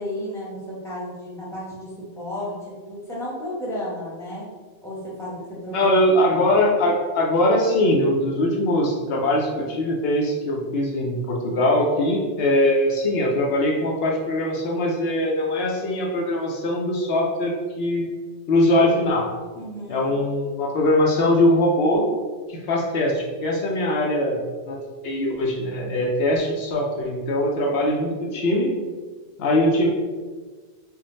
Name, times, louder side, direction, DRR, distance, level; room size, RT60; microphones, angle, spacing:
voice 1, 0.0-4.5 4.8-5.9 6.3-6.5 19.5-20.2, equal, 5° left, -6 dB, 0.9 m, -33 dB
voice 2, 5.7-18.1 18.5-19.3 19.9-22.1 22.5-24.8 25.0-28.7 29.4-29.9, left 1 dB, 70° left, -1 dB, 0.8 m, -21 dB
3.6 x 2.1 x 3.9 m, 1.4 s
omnidirectional pair, 1.1 m